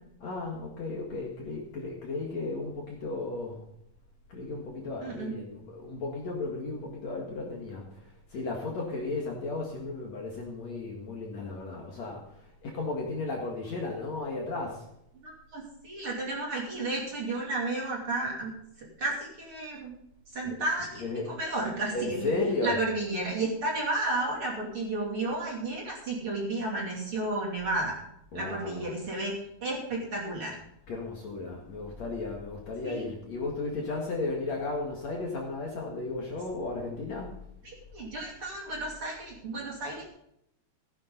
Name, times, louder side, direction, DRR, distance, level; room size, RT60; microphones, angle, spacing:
voice 1, 0.2-3.7 4.3-14.9 20.5-21.3 21.9-22.8 28.3-28.9 30.9-37.4, left 3 dB, 50° left, -1 dB, 2.6 m, -35 dB
voice 2, 5.0-5.3 15.2-18.5 18.8-19.9 20.3-22.3 22.6-28.0 28.3-29.3 29.6-30.5 32.8-32.9 37.6-40.1, right 2 dB, 35° right, -2 dB, 3.3 m, -32 dB
15.5 x 10.5 x 4.0 m, 0.76 s
omnidirectional pair, 4.6 m